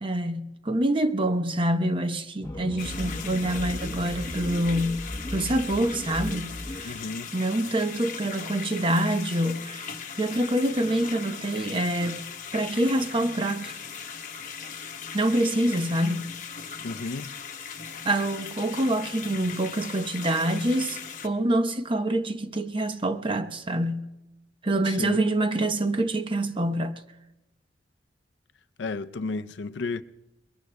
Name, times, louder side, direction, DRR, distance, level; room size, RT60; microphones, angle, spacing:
voice 1, 0.0-5.0 5.3-7.0 7.3-12.3 12.5-13.8 15.1-16.3 18.0-24.1 24.6-27.0, right 1 dB, 30° right, 0.8 m, -26 dB
sound 1, 2.4-6.9, left 1 dB, 20° left, 0.9 m, -36 dB
sound 2, 2.8-21.3, left 6 dB, 45° left, 0.9 m, -39 dB
voice 2, 6.8-7.3 16.8-17.3 24.9-25.2 28.8-30.0, left 3 dB, 80° left, 0.5 m, -33 dB
27.0 x 22.0 x 2.2 m
head